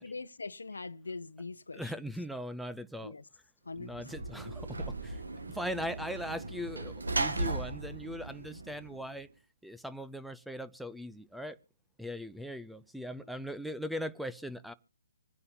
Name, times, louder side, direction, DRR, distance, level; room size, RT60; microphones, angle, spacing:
voice 1, 0.0-1.9 3.0-3.2 3.7-4.2, left 3 dB, 85° left, 0.8 m, -42 dB
voice 2, 1.7-3.1 3.8-5.2 5.5-9.3 9.6-11.6 12.0-14.7, equal, ahead, 0.6 m, -40 dB
Sliding door / Slam, 3.8-9.2, right 2 dB, 80° right, 1.7 m, -37 dB
26.0 x 9.6 x 2.7 m
figure-of-eight pair, 140°, 0 cm